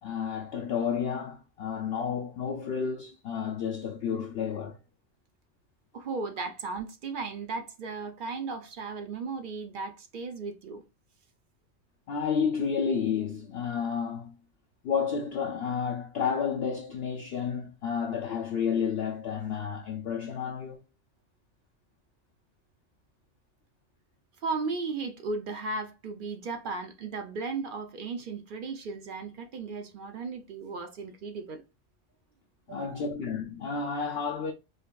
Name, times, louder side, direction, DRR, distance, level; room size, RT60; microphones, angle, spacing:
voice 1, 0.0-4.8 12.1-14.3 14.8-20.8 32.7-34.5, left 6 dB, 65° left, 0.6 m, -31 dB
voice 2, 5.9-10.8 24.4-31.6 32.7-33.0, right 4 dB, 55° right, 0.6 m, -36 dB
5.1 x 2.5 x 2.2 m
omnidirectional pair, 1.3 m